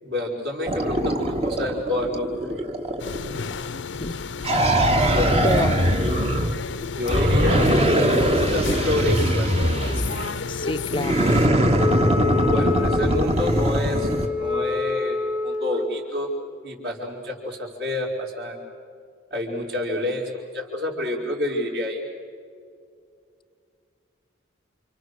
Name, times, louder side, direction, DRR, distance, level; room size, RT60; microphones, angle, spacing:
voice 1, 0.0-2.7 4.6-5.5 6.0-6.3 7.0-7.7 8.4-9.5 12.4-16.3 16.6-18.6 19.3-22.0, left 1 dB, 55° right, -1 dB, 4.8 m, -28 dB
sound 1, 0.7-3.5 4.4-6.6 7.1-10.4 10.9-14.3, right 1 dB, 30° right, 1.5 m, -21 dB
sound 2, 3.0-11.5, left 5 dB, 70° left, 0.7 m, -32 dB
voice 2, 5.4-5.8 6.4-6.6 10.5-11.3, left 2 dB, 25° left, 12 dB, 0.6 m, -28 dB
Wind instrument woodwind instrument, 11.8-15.9, left 4 dB, 5° right, 0.9 m, -27 dB
29.5 x 27.0 x 6.6 m, 2.3 s
head